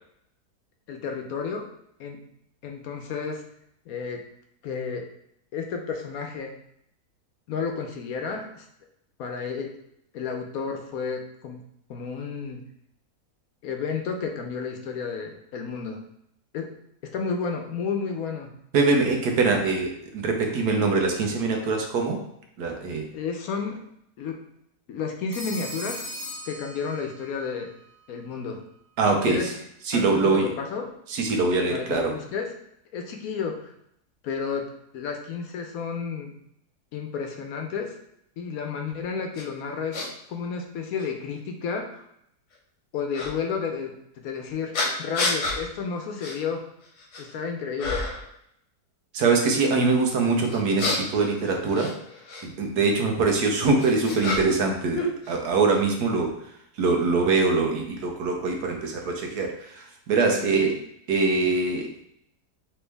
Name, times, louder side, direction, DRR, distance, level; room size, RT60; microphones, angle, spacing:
voice 1, 0.9-1.7 2.0-2.2 2.6-3.4 3.9-4.2 4.6-5.0 5.5-6.5 7.5-8.6 9.2-9.7 10.1-11.6 11.9-12.6 13.6-16.0 16.5-16.7 17.1-18.5 23.1-23.8 24.2-24.4 24.9-26.0 26.5-27.7 28.1-28.6 29.3-29.5 29.9-30.9 31.7-32.5 32.9-33.7 34.2-34.7 34.9-36.3 36.9-37.9 38.4-42.0 42.9-43.9 44.2-44.7 45.0-46.6 47.2-48.0 60.3-60.7, left 5 dB, 70° left, 4 dB, 1.0 m, -31 dB
voice 2, 18.7-22.2 22.6-23.1 29.0-29.5 29.8-30.5 31.1-32.1 49.1-51.9 52.4-56.3 56.8-60.7 61.1-61.9, right 3 dB, 80° right, 2 dB, 1.4 m, -23 dB
Telephone, 25.3-27.4, left 1 dB, 65° right, 1.7 m, -37 dB
sound 1, 39.3-39.4 39.9-40.1 41.0-41.1 43.1-43.3 44.7-45.6 46.2-46.4 46.8-47.3 47.8-48.3 50.5-52.4 53.4-54.7 54.9-55.8, left 2 dB, 85° left, 1.5 m, -29 dB
4.4 x 3.0 x 3.3 m, 0.74 s
omnidirectional pair, 1.7 m